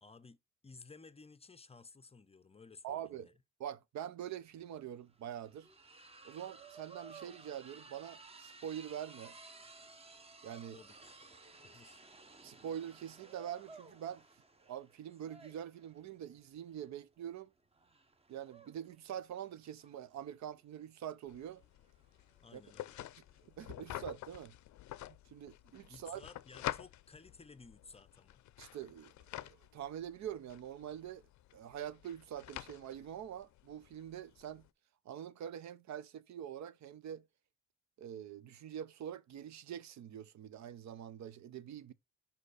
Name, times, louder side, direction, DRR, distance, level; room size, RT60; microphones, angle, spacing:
voice 1, 0.0-3.3 10.7-11.1 11.6-12.0 22.4-23.0 25.9-28.4, left 4 dB, 20° left, 0.5 m, -56 dB
voice 2, 2.8-3.3 3.6-5.7 6.2-9.4 10.4-10.8 12.4-14.2 14.7-17.5 18.3-21.6 22.5-22.6 23.6-24.5 25.3-26.2 28.6-29.1 29.5-31.2 31.5-34.6 35.1-37.3 38.0-41.9, right 10 dB, 65° right, 0.6 m, -45 dB
sound 1, 4.3-4.4 4.6-23.4, right 3 dB, 20° right, 0.8 m, -57 dB
sound 2, 21.3-34.7, left 14 dB, 70° left, 0.5 m, -48 dB
5.4 x 4.3 x 4.8 m
cardioid pair, 90°, 30 cm